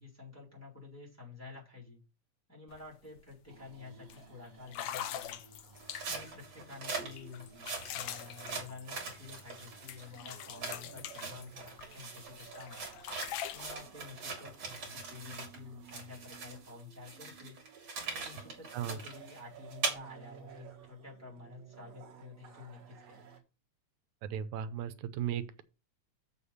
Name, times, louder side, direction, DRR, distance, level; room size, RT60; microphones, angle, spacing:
voice 1, 0.0-2.0 2.5-5.4 6.0-7.5 7.9-13.0 13.5-17.6 18.1-23.3, left 4 dB, 5° left, 4.1 m, -50 dB
sound 1, 2.7-2.8 3.2-3.5 4.1-4.2 4.7-6.3 6.9-9.6 9.9-12.0 12.4-13.7, left 10 dB, 70° left, 1.4 m, -43 dB
sound 2, 3.5-23.4, right 5 dB, 60° right, 2.8 m, -56 dB
sound 3, 5.8-15.6 15.9-19.9, right 4 dB, 40° right, 3.2 m, -42 dB
voice 2, 24.2-25.6, right 9 dB, 90° right, 2.1 m, -36 dB
7.1 x 6.9 x 5.4 m
omnidirectional pair, 3.3 m